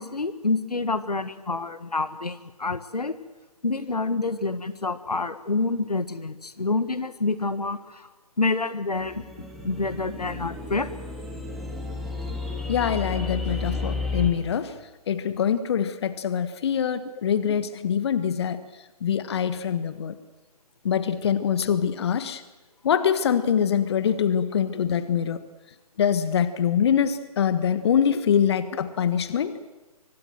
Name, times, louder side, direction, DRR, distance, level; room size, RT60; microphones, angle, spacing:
voice 1, 0.0-3.1 3.6-8.1 8.4-10.9, left 3 dB, 85° left, 13 dB, 1.6 m, -28 dB
sound 1, 9.0-14.3, left 3 dB, ahead, 3.0 m, -32 dB
voice 2, 12.7-14.7 15.1-18.6 19.0-20.2 20.8-22.4 22.8-25.5 26.0-29.6, left 8 dB, 45° left, 13 dB, 1.4 m, -24 dB
24.5 x 19.5 x 7.8 m, 1.2 s
figure-of-eight pair, 140°, 20 cm